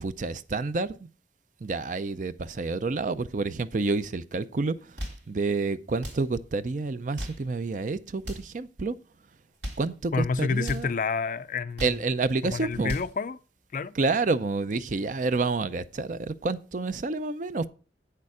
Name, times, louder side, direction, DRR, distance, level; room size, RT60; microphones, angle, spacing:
voice 1, 0.0-1.1 1.6-9.0 9.8-10.9 11.8-12.9 13.9-17.7, right 3 dB, 45° right, 0.5 m, -29 dB
sound 1, 4.8-5.3 5.9-6.3 7.0-7.5 8.2-8.6 9.4-9.9 10.6-10.9 11.6-12.1 12.6-13.2, equal, 70° right, 2.5 m, -38 dB
voice 2, 10.1-11.9 12.4-13.4 13.7-13.9, left 5 dB, 45° left, 0.4 m, -29 dB
8.5 x 6.7 x 4.8 m
head